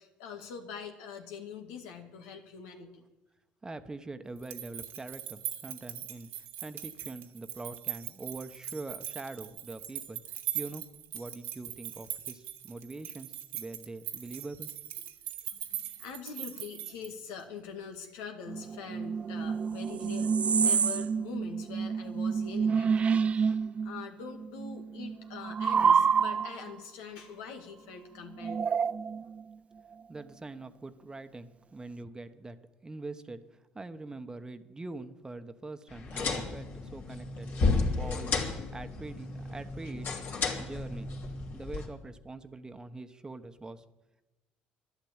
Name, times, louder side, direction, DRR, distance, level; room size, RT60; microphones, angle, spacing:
voice 1, 0.0-3.0 15.5-28.8, left 6 dB, 85° left, 4 dB, 2.0 m, -44 dB
voice 2, 3.6-6.3 6.6-10.2 10.5-10.8 11.1-14.7 15.0-15.1 30.1-32.6 32.8-33.4 33.7-38.3 38.7-40.3 40.6-41.1 41.5-43.8, right 3 dB, 20° right, 9 dB, 1.2 m, -43 dB
sound 1, 4.4-17.4, right 12 dB, 75° right, 1.7 m, -40 dB
sound 2, 18.5-24.0 24.3-26.7 28.4-29.4, right 6 dB, 35° right, 0.4 m, -28 dB
sound 3, 35.9-41.9, left 3 dB, 55° left, 2.9 m, -33 dB
12.0 x 11.5 x 8.8 m, 1.0 s
supercardioid pair, 80°, 4 cm